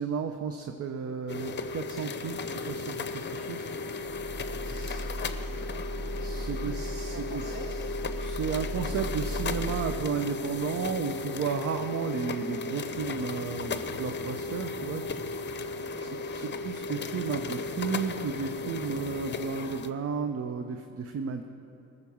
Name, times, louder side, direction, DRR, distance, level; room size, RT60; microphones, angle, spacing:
voice 1, 0.0-3.7 4.0-4.3 4.6-5.1 6.2-7.6 8.2-21.4, right 6 dB, 50° right, 7 dB, 0.7 m, -34 dB
sound 1, 1.3-19.9, left 3 dB, 35° left, 0.7 m, -35 dB
sound 2, 4.0-10.0, equal, 10° right, 2.3 m, -36 dB
voice 2, 4.3-6.3 6.5-7.7 15.9-16.6, right 2 dB, 35° right, -1 dB, 2.6 m, -50 dB
18.5 x 6.7 x 7.1 m, 2.8 s
cardioid pair, 90°, 30 cm